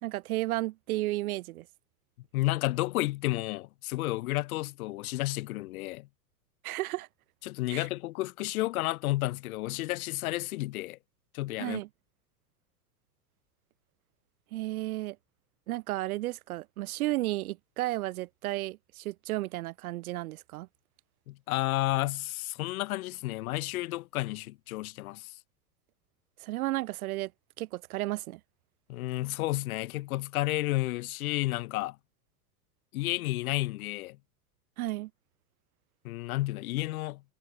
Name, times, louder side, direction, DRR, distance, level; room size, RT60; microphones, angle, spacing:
voice 1, 0.0-1.7 6.6-7.1 7.7-7.9 11.6-11.9 14.5-15.2 15.7-20.7 26.4-27.3 27.6-28.4 34.8-35.1, right 17 dB, 60° right, 0.5 m, -33 dB
voice 2, 2.3-6.1 7.4-11.0 11.3-11.8 21.3-25.4 28.9-32.0 32.9-34.2 36.0-37.2, left 18 dB, 60° left, 0.8 m, -31 dB
hypercardioid pair, 95°, 50 cm